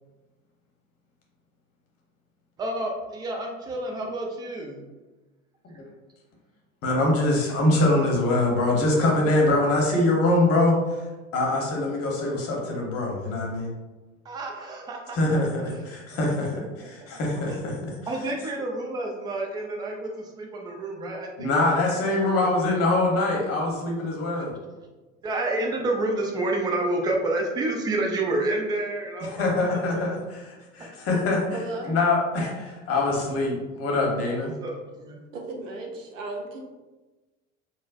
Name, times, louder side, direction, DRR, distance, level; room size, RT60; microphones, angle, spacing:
voice 1, 2.6-4.9 14.2-15.4 15.7-15.8 16.5-16.6 17.5-17.6 18.1-21.5 21.7-22.0 22.2-22.5 24.3-24.5 25.2-30.0 34.6-35.2, right 2 dB, 10° right, 1 dB, 0.3 m, -29 dB
voice 2, 6.8-10.8 11.3-13.7 15.1-16.5 17.1-17.9 21.0-21.1 21.4-24.5 29.2-31.4 31.9-34.5, left 2 dB, 35° left, -1 dB, 1.0 m, -23 dB
voice 3, 31.5-32.0 35.3-36.6, right 2 dB, 70° right, 2 dB, 0.7 m, -35 dB
4.3 x 2.1 x 2.4 m, 1.2 s
figure-of-eight pair, 70°, 39 cm